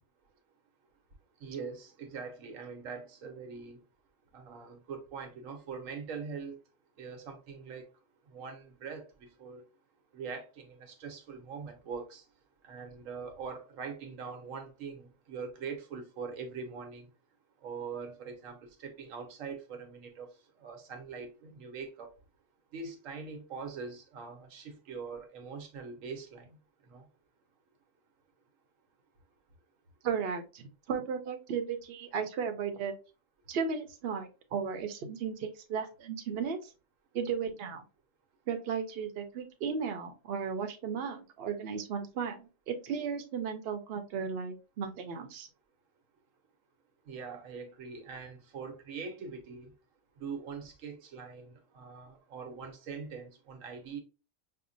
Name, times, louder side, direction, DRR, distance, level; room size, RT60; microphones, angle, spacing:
voice 1, 1.4-3.8 4.3-6.6 7.0-7.8 8.3-9.6 10.1-12.2 12.6-17.1 17.6-20.3 20.6-22.1 22.7-26.5 26.9-27.0 47.1-49.7 50.2-54.0, right 5 dB, 85° right, 1.2 m, -42 dB
voice 2, 30.0-32.9 33.5-36.6 37.1-37.8 38.5-45.5, right 6 dB, 55° right, 0.8 m, -35 dB
5.6 x 2.1 x 2.5 m
omnidirectional pair, 1.3 m